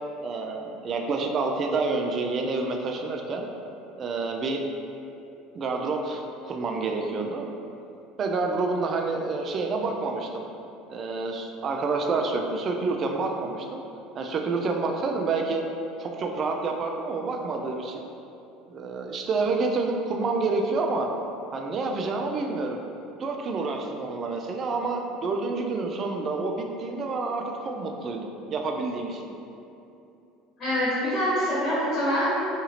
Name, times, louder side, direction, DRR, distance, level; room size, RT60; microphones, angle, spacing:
voice 1, 0.2-3.5 4.0-4.6 5.5-7.5 8.2-10.4 10.9-13.8 14.1-15.6 16.0-18.0 18.7-21.1 21.5-22.8 23.2-29.3, right 3 dB, 40° right, 2 dB, 0.3 m, -28 dB
voice 2, 30.6-32.3, equal, 45° left, -11 dB, 1.3 m, -25 dB
2.7 x 2.5 x 2.8 m, 2.8 s
supercardioid pair, 90°, 0 cm